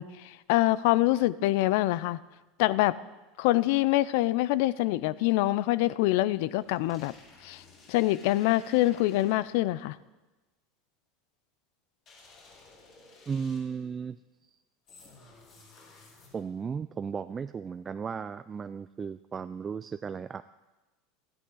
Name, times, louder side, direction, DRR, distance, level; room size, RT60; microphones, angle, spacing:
voice 1, 0.0-2.2 2.6-2.9 3.4-7.1 7.4-7.6 7.9-10.0, left 17 dB, 70° left, 18 dB, 0.4 m, -25 dB
sound 1, 6.5-9.6 12.1-13.9 14.9-16.6, left 3 dB, 50° left, 4.8 m, -55 dB
voice 2, 13.3-14.2 14.5-14.6 16.3-20.4, right 6 dB, 25° right, 12 dB, 0.3 m, -35 dB
14.0 x 11.5 x 3.9 m, 1.1 s
hypercardioid pair, 95°, 0 cm